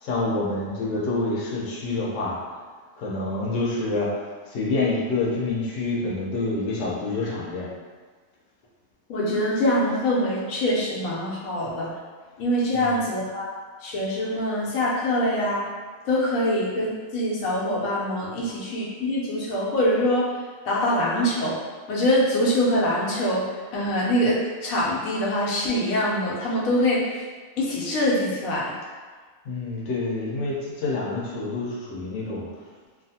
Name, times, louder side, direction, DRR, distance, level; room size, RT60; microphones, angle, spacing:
voice 1, 0.0-2.6 3.0-7.7 12.7-13.0 29.4-32.5, left 2 dB, 65° left, -5 dB, 1.0 m, -27 dB
voice 2, 9.1-11.9 12.4-13.5 13.8-15.7 16.0-20.3 20.6-21.6 21.9-27.1 27.6-28.7, left 1 dB, 90° left, -5 dB, 1.1 m, -24 dB
2.6 x 2.4 x 2.7 m, 1.5 s
omnidirectional pair, 1.4 m